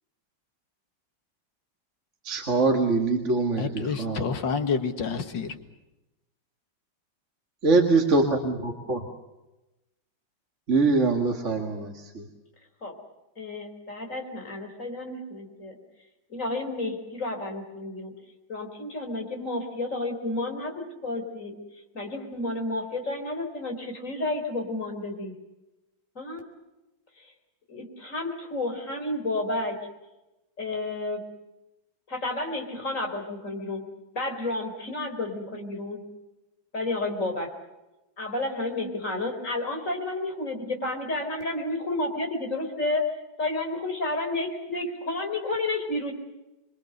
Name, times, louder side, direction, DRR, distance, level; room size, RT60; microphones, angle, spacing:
voice 1, 2.2-4.2 7.6-9.0 10.7-12.2, right 3 dB, 40° right, 2 dB, 2.2 m, -23 dB
voice 2, 3.6-5.6, left 5 dB, 65° left, 7 dB, 2.3 m, -28 dB
voice 3, 13.4-15.8 16.3-18.1 18.5-21.6 21.9-25.3 26.1-26.4 27.2-27.3 27.7-29.8 30.6-31.2 32.1-33.9 34.1-36.0 36.7-37.5 38.2-43.1 43.4-46.1, left 2 dB, 40° left, 3 dB, 4.5 m, -31 dB
27.5 x 23.5 x 6.7 m, 1.0 s
omnidirectional pair, 2.1 m